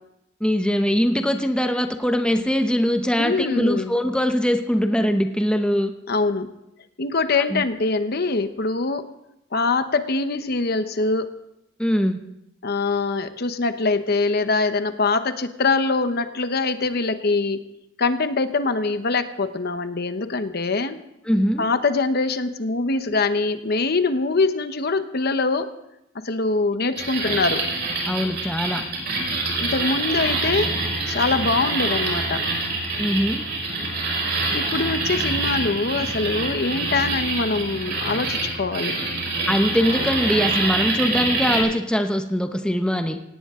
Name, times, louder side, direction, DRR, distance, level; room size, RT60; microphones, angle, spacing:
voice 1, 0.4-6.0 7.4-7.6 11.8-12.2 21.3-21.7 27.2-27.4 28.1-28.8 33.0-33.4 39.5-43.2, equal, 5° left, 6 dB, 0.8 m, -22 dB
voice 2, 3.2-3.9 6.1-6.5 7.0-9.0 9.5-11.3 12.6-17.6 18.0-21.0 21.6-25.7 26.2-27.6 29.6-30.8 31.1-32.4 34.5-38.9, left 3 dB, 55° left, 10 dB, 1.0 m, -23 dB
sound 1, 27.0-41.6, right 2 dB, 60° right, 5.5 m, -26 dB
18.0 x 17.5 x 3.7 m, 0.86 s
head